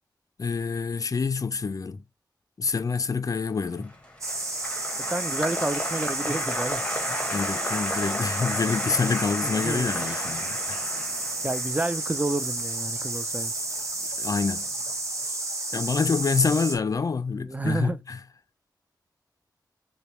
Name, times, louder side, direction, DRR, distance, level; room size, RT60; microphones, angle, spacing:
voice 1, 0.4-2.0 2.6-3.9 7.3-10.9 14.2-14.7 15.7-18.2, left 5 dB, 50° left, 0.4 m, -27 dB
Applause, 3.7-14.0 14.3-14.9, left 1 dB, 15° left, 1.2 m, -34 dB
sound 1, 4.2-16.8, right 2 dB, 40° right, 1.1 m, -31 dB
voice 2, 5.0-6.8 9.4-10.2 11.4-13.5 17.3-18.0, right 2 dB, 20° right, 0.4 m, -30 dB
6.6 x 2.2 x 3.0 m
cardioid pair, 65°, 8 cm